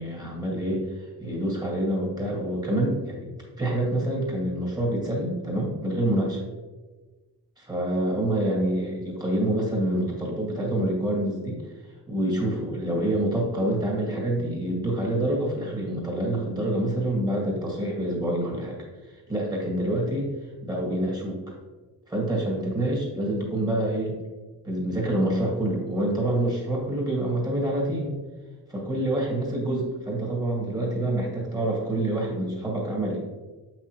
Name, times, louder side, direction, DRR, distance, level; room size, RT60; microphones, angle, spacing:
voice 1, 0.0-3.3 3.6-6.4 7.6-11.6 12.1-18.8 19.0-20.3 20.6-21.5 22.1-24.2 24.6-28.2 28.7-33.2, right 1 dB, 10° right, -3 dB, 1.9 m, -27 dB
7.6 x 6.0 x 3.0 m, 1.3 s
cardioid pair, 155°, 38 cm